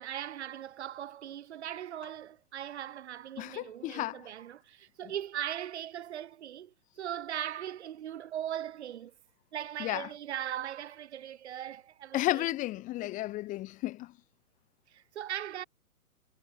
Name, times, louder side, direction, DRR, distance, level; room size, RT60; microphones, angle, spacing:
voice 1, 0.0-9.1 9.5-12.4 13.0-13.1 14.9-15.6, right 11 dB, 45° right, 6.3 m, -39 dB
voice 2, 3.4-4.2 9.8-10.1 12.1-14.1, left 17 dB, 15° left, 3.7 m, -33 dB
hypercardioid pair, 160°, 44 cm